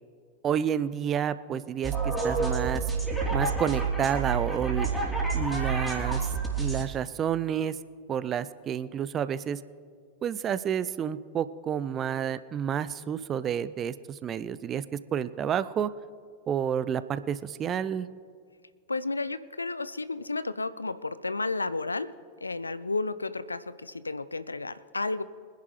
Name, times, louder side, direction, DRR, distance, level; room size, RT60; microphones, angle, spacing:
voice 1, 0.4-2.8 3.3-6.2 6.6-7.8 8.1-9.6 10.2-15.9 16.5-18.1, right 8 dB, 25° right, 15 dB, 0.5 m, -30 dB
sound 1, 1.8-6.8, right 4 dB, 5° left, 3.4 m, -28 dB
voice 2, 18.9-22.1 22.4-25.2, left 3 dB, 80° left, 16 dB, 0.5 m, -32 dB
24.0 x 10.5 x 3.3 m, 2.1 s
figure-of-eight pair, 90°, 0 cm